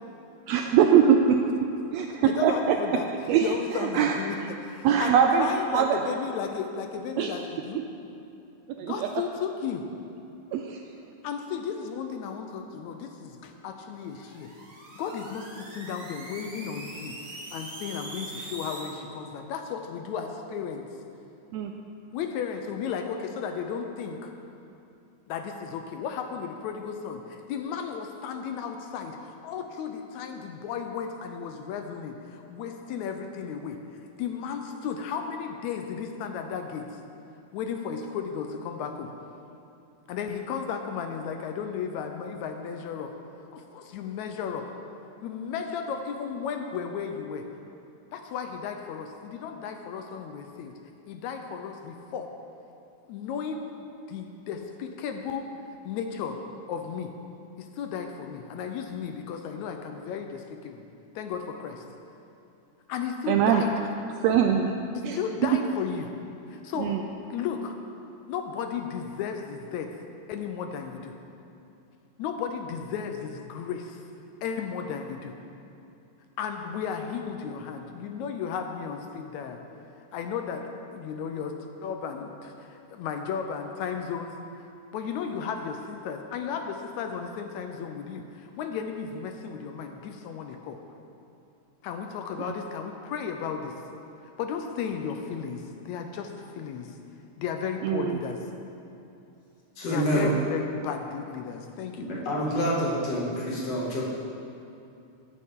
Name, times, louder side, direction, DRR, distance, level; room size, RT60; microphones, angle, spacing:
voice 1, 0.5-1.4 1.9-4.5 4.8-6.2 7.2-7.4 7.7-7.8 8.8-9.2 10.5-10.8 21.5-21.7 63.3-63.9 64.2-64.7 65.0-65.6 66.7-67.0 92.4-92.5 97.8-98.2, right 7 dB, 80° right, 3 dB, 1.5 m, -23 dB
voice 2, 2.3-3.1 3.4-7.8 8.9-9.9 11.2-14.5 15.0-17.1 17.5-20.9 22.1-24.3 25.3-33.8 34.2-37.0 37.5-39.1 40.1-43.1 43.5-44.7 45.2-47.5 48.1-50.7 51.1-52.3 53.1-53.6 54.1-55.4 55.9-56.4 56.7-57.1 57.6-60.8 61.2-61.8 62.9-64.1 65.1-66.1 66.5-67.0 67.3-67.8 68.2-69.9 70.3-71.2 72.2-74.0 74.4-75.3 76.4-79.6 80.0-81.6 81.8-84.3 84.9-90.8 91.8-93.8 94.4-97.0 97.4-98.4 99.9-102.1, left 7 dB, 80° left, 5 dB, 1.9 m, -34 dB
sound 1, 14.1-18.9, right 1 dB, 40° right, 2.1 m, -42 dB
voice 3, 99.8-100.3 102.0-104.0, equal, 60° left, -6 dB, 2.9 m, -27 dB
15.0 x 8.4 x 3.6 m, 2.7 s
omnidirectional pair, 3.4 m